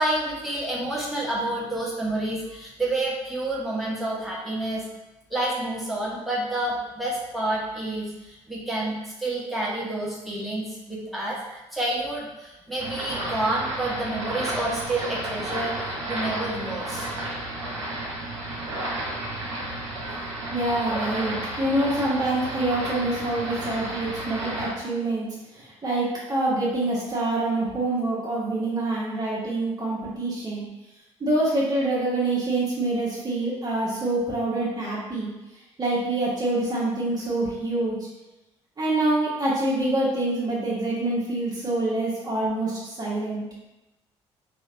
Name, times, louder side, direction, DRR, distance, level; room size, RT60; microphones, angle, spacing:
voice 1, 0.0-4.8 5.3-11.4 11.7-17.1, right 1 dB, ahead, -6 dB, 1.2 m, -29 dB
sound 1, 12.8-24.7, right 1 dB, 80° right, 0.7 m, -32 dB
voice 2, 20.5-25.3 25.5-30.6 31.2-35.3 35.8-38.0 38.8-43.4, right 2 dB, 25° right, -6 dB, 1.0 m, -26 dB
4.2 x 3.1 x 2.5 m, 0.97 s
figure-of-eight pair, 50°, 15 cm